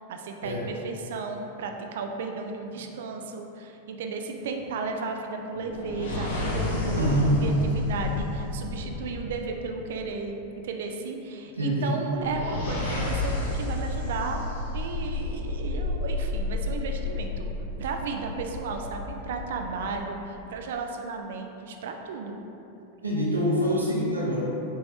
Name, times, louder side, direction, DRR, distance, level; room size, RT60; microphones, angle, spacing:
voice 1, 0.1-7.1 7.4-14.4 14.7-17.5 17.8-22.4, right 4 dB, 55° right, 3 dB, 0.3 m, -34 dB
sound 1, 5.5-9.9 12.0-20.0, left 2 dB, 60° left, 0.7 m, -31 dB
voice 2, 7.0-7.4 11.5-11.9 23.0-24.4, equal, 80° right, -4 dB, 0.8 m, -25 dB
5.4 x 3.1 x 2.8 m, 2.9 s
figure-of-eight pair, 90°, 0 cm